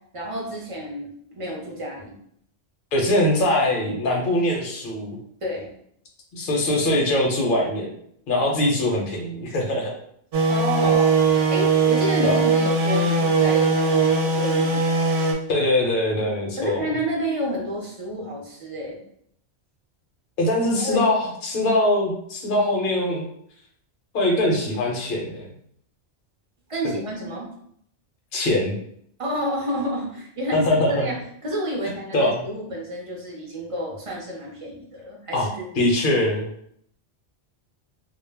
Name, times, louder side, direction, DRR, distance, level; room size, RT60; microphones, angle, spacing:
voice 1, 0.1-2.1 5.4-5.7 10.5-11.2 11.5-14.8 16.6-19.0 20.8-21.1 26.7-27.5 29.2-35.7, equal, 40° right, -2 dB, 0.5 m, -30 dB
voice 2, 2.9-5.2 6.3-8.0 8.3-9.9 12.2-12.4 15.5-16.8 20.4-23.3 24.1-25.5 28.3-28.8 30.5-31.1 32.1-32.4 35.3-35.5 35.7-36.5, left 1 dB, 55° left, -1 dB, 0.8 m, -22 dB
sound 1, 10.3-15.3, right 4 dB, 70° right, 0.8 m, -20 dB
2.2 x 2.1 x 3.2 m, 0.69 s
omnidirectional pair, 1.1 m